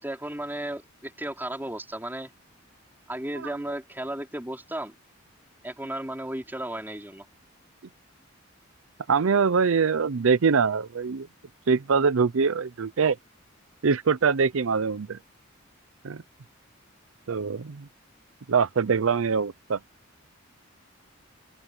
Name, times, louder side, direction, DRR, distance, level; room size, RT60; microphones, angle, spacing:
voice 1, 0.0-2.3 3.1-4.9 5.6-7.3, right 1 dB, 10° right, 4.6 m, -34 dB
voice 2, 9.1-11.3 11.7-13.2 13.8-15.2 16.0-16.2 17.3-17.9 18.5-19.8, right 5 dB, 75° right, 0.6 m, -23 dB
open air
head